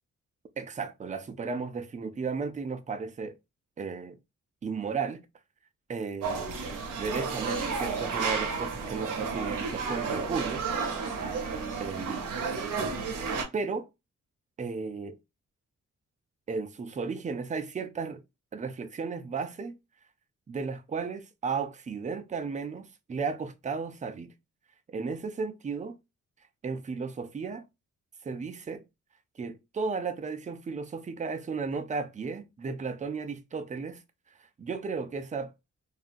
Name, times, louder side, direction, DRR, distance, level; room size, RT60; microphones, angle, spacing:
voice 1, 0.6-3.4 3.8-4.2 4.6-5.2 5.9-6.6 7.0-10.7 11.8-12.3 13.5-13.9 14.6-15.2 16.5-18.2 18.5-19.8 20.5-24.3 24.9-26.0 26.6-27.6 28.2-28.8 29.4-34.0 34.4-35.5, right 5 dB, 25° right, 0.4 m, -34 dB
sound 1, 6.2-13.4, right 5 dB, 90° right, 0.7 m, -32 dB
2.7 x 2.3 x 2.4 m
cardioid pair, 65°, 31 cm